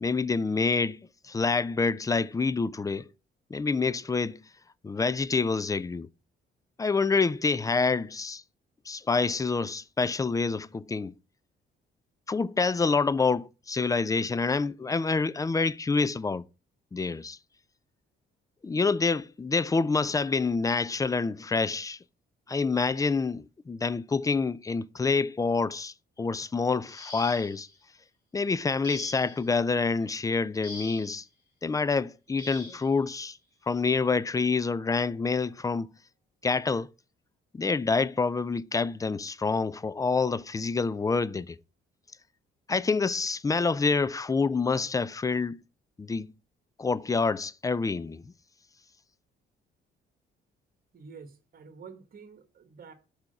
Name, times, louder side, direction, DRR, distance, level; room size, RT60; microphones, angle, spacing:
voice 1, 0.0-3.1 3.5-4.4 4.8-6.1 6.8-8.4 8.9-11.1 12.3-16.4 16.9-17.4 18.6-22.0 22.5-27.7 28.3-31.2 31.6-33.4 33.7-35.9 36.4-36.9 37.5-41.6 42.7-45.6 46.0-46.3 46.8-48.2, left 4 dB, 15° left, 0.4 m, -27 dB
sound 1, 26.8-27.7 28.8-29.5 30.6-31.2 32.4-32.9 34.1-34.2 34.7-34.9, left 2 dB, 45° left, 3.2 m, -43 dB
voice 2, 50.9-52.9, right 5 dB, 45° right, 1.5 m, -48 dB
6.0 x 4.9 x 6.5 m
cardioid pair, 90°, 20 cm